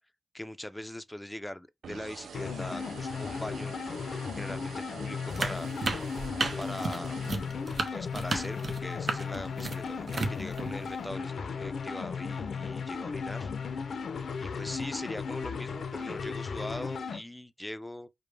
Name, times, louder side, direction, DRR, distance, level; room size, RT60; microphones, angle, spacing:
voice 1, 0.3-5.7 6.6-7.2 7.9-13.9 14.4-18.1, left 1 dB, 10° left, 0.4 m, -41 dB
sound 1, 1.8-8.0, right 7 dB, 90° right, 0.3 m, -47 dB
sound 2, 2.3-17.2, left 5 dB, 80° left, 0.5 m, -36 dB
sound 3, 5.3-11.1, right 3 dB, 60° right, 0.8 m, -33 dB
4.9 x 2.1 x 3.3 m
wide cardioid pair, 90°, 0 cm